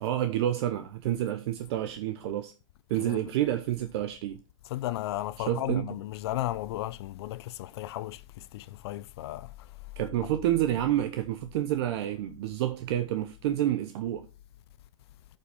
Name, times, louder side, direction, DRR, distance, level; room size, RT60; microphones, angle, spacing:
voice 1, 0.0-2.5 2.9-4.4 5.5-5.9 10.0-14.3, right 12 dB, 50° right, 0.8 m, -29 dB
voice 2, 4.6-9.8, left 15 dB, 50° left, 0.5 m, -35 dB
12.5 x 5.4 x 3.5 m
hypercardioid pair, 140°, 17 cm